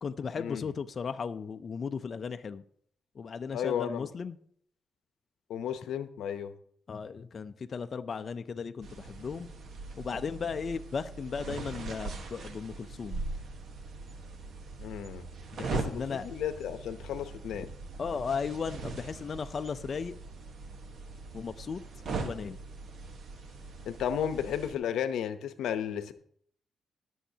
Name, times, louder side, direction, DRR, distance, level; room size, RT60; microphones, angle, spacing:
voice 1, 0.0-2.6 3.2-4.4 6.9-9.5 10.0-13.2 15.5-16.2 17.6-17.7 18.0-20.1 21.3-21.8 22.1-22.6, left 5 dB, 45° left, 8 dB, 0.4 m, -36 dB
voice 2, 3.5-4.1 5.5-6.5 14.8-15.2 15.8-17.7 23.9-26.1, left 9 dB, 90° left, 11 dB, 0.7 m, -33 dB
sound 1, 8.8-24.7, right 3 dB, 65° right, 1.1 m, -41 dB
20.5 x 7.1 x 2.8 m, 0.65 s
cardioid pair, 95°, 0 cm